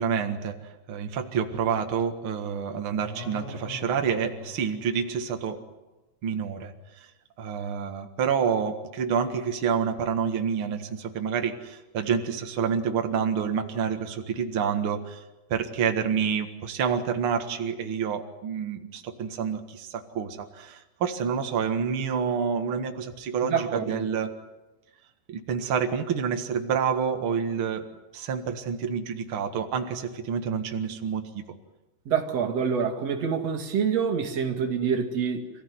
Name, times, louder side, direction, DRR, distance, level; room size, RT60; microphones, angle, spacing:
voice 1, 0.0-5.6 6.2-7.1 7.4-15.2 15.5-24.3 25.3-27.8 28.1-31.2, right 7 dB, 80° right, 5 dB, 1.1 m, -28 dB
sound 1, 3.0-5.5, left 4 dB, 75° left, 5.5 m, -43 dB
voice 2, 23.4-24.1 32.1-35.5, right 6 dB, 45° right, 4 dB, 2.6 m, -26 dB
27.5 x 16.5 x 9.6 m, 1.0 s
omnidirectional pair, 5.3 m